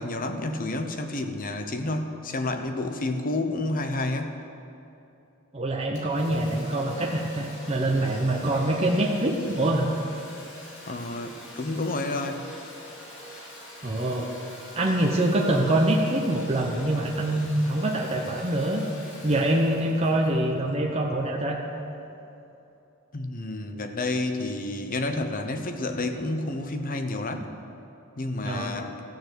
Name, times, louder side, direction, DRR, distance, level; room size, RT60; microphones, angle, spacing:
voice 1, 0.0-4.4 10.8-12.4 23.1-27.5 28.2-28.9, left 2 dB, 40° left, 7 dB, 0.8 m, -30 dB
voice 2, 5.5-9.9 13.8-14.3 14.7-18.8 19.2-21.6 28.4-28.8, right 1 dB, 30° right, -1 dB, 0.9 m, -25 dB
Domestic sounds home sounds, 5.9-21.4, left 1 dB, 60° left, 2.8 m, -43 dB
14.5 x 6.8 x 8.0 m, 2.8 s
head